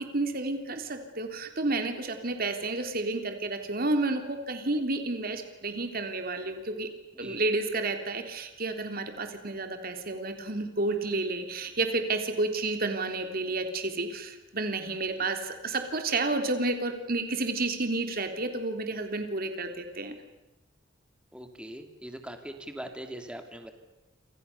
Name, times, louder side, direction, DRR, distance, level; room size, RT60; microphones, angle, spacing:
voice 1, 0.1-6.9 7.2-20.1, right 2 dB, 50° right, 6 dB, 3.5 m, -31 dB
voice 2, 21.3-23.7, right 1 dB, 5° right, 6 dB, 2.6 m, -41 dB
29.0 x 27.5 x 6.9 m, 0.99 s
head